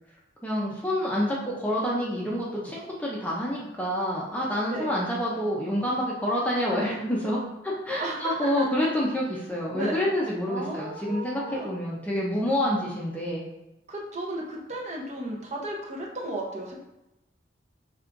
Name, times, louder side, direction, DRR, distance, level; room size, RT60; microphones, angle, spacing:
voice 1, 0.4-7.4 7.6-13.4, equal, 10° left, -5 dB, 0.6 m, -28 dB
voice 2, 8.0-8.6 9.7-10.0 10.5-11.7 13.9-16.7, right 1 dB, 35° right, -2 dB, 0.8 m, -34 dB
6.0 x 3.4 x 2.6 m, 0.93 s
head